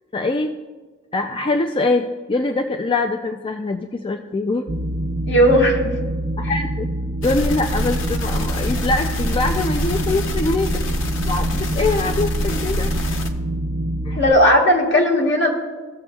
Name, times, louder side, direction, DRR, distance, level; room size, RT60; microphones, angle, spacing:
voice 1, 0.1-0.5 1.1-4.6 6.4-6.9 7.2-10.7 11.2-12.9 14.0-14.2, left 3 dB, 25° left, 5 dB, 0.4 m, -23 dB
sound 1, 4.7-14.3, right 1 dB, 35° right, 0.6 m, -26 dB
voice 2, 5.3-5.9 14.1-15.5, equal, 65° left, -1 dB, 1.6 m, -16 dB
sound 2, 7.2-13.3, left 1 dB, 90° left, 0.7 m, -26 dB
16.5 x 7.0 x 2.3 m, 1.3 s
head